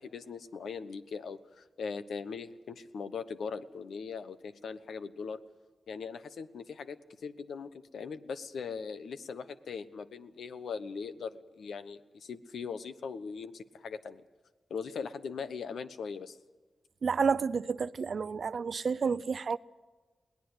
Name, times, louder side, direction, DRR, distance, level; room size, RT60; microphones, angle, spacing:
voice 1, 0.0-5.4 5.9-14.2 14.7-16.4, left 5 dB, 85° left, 1.0 m, -40 dB
voice 2, 17.0-19.6, right 5 dB, 65° right, 0.6 m, -30 dB
22.0 x 17.5 x 8.1 m
cardioid pair, 75°, 0 cm